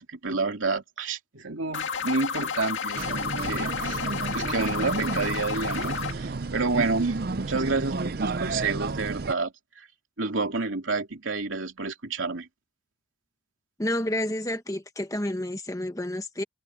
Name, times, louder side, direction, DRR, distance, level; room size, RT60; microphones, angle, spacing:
voice 1, 0.0-4.0 4.3-9.9 10.2-12.5, right 3 dB, 80° right, 2.9 m, -29 dB
sound 1, 1.7-6.1, left 6 dB, 75° left, 2.0 m, -31 dB
sound 2, 3.0-9.3, right 3 dB, 50° right, 0.5 m, -31 dB
voice 2, 13.8-16.4, left 1 dB, 15° left, 1.2 m, -30 dB
head